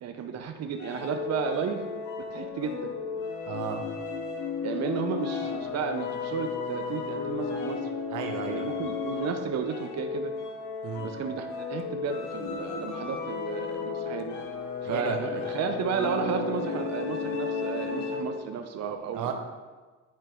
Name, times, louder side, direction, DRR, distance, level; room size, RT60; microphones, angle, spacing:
voice 1, 0.0-1.9 2.3-2.9 4.6-7.9 8.4-10.3 11.0-14.3 14.8-19.3, right 6 dB, 60° right, 5 dB, 0.7 m, -33 dB
sound 1, 0.8-18.5, left 5 dB, 85° left, 1.2 m, -34 dB
voice 2, 3.4-3.8 8.1-8.7 10.8-11.1 14.8-15.5 19.1-19.3, right 7 dB, 90° right, 4 dB, 0.9 m, -34 dB
10.5 x 4.5 x 3.0 m, 1.3 s
cardioid pair, 90°, 30 cm